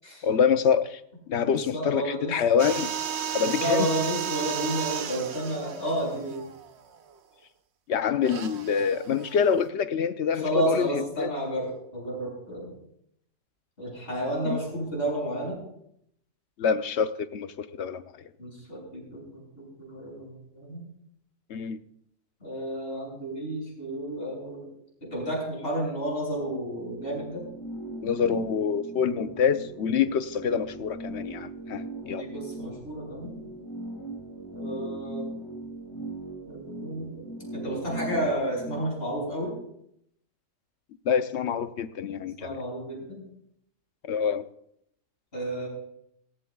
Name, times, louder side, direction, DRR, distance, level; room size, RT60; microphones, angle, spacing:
voice 1, 0.2-1.0 1.3-2.9 3.3-3.9 7.9-11.3 14.4-14.6 16.6-18.3 21.5-21.8 28.0-32.2 41.0-42.6 44.1-44.5, left 7 dB, 65° left, 11 dB, 0.9 m, -26 dB
voice 2, 1.5-2.3 3.4-6.5 10.3-12.7 13.8-15.6 18.4-20.8 22.4-24.7 25.0-27.4 32.1-33.4 34.5-35.3 36.5-37.2 37.5-39.5 42.4-43.2 45.3-45.7, right 1 dB, 45° left, -3 dB, 7.0 m, -31 dB
sound 1, 2.6-7.1 8.2-9.6, right 9 dB, 60° right, 1.0 m, -34 dB
sound 2, 26.4-38.9, right 2 dB, 20° left, 1.7 m, -39 dB
17.5 x 17.5 x 2.3 m, 0.74 s
omnidirectional pair, 1.4 m